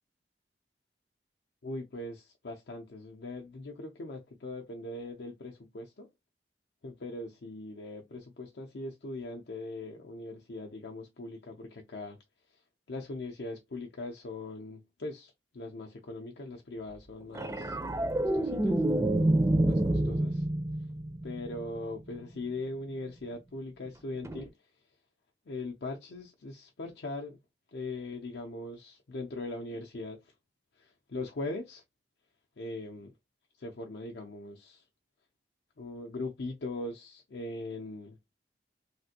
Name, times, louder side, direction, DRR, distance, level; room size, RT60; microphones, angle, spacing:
voice 1, 1.6-6.1 6.8-12.2 12.9-17.8 18.2-18.8 19.7-20.4 21.2-24.5 25.5-27.4 27.7-30.3 30.8-31.8 32.6-33.1 33.6-34.8 35.8-38.2, left 2 dB, 70° left, 0.6 m, -40 dB
sound 1, 17.3-21.8 24.2-24.4, right 1 dB, 15° right, 0.4 m, -28 dB
3.2 x 2.5 x 2.7 m
head